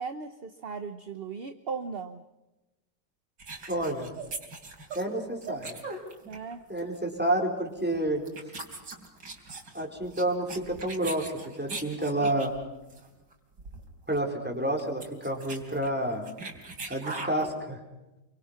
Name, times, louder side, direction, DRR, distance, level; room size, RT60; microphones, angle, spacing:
voice 1, 0.0-2.2 6.3-6.6, right 5 dB, 40° right, 9 dB, 1.0 m, -37 dB
sound 1, 3.4-6.5 6.8-7.0 7.8-7.9 8.2-12.6 12.9-13.1 13.3-13.4 13.6-13.8 14.1-14.2 14.7-17.5, right 3 dB, 70° right, 4.0 m, -40 dB
voice 2, 3.7-4.1 4.9-5.8 6.7-8.2 9.7-11.3 11.6-12.5 14.1-16.2 16.9-17.8, right 1 dB, 5° right, 1 dB, 4.5 m, -29 dB
28.5 x 24.0 x 5.9 m, 1.0 s
omnidirectional pair, 2.0 m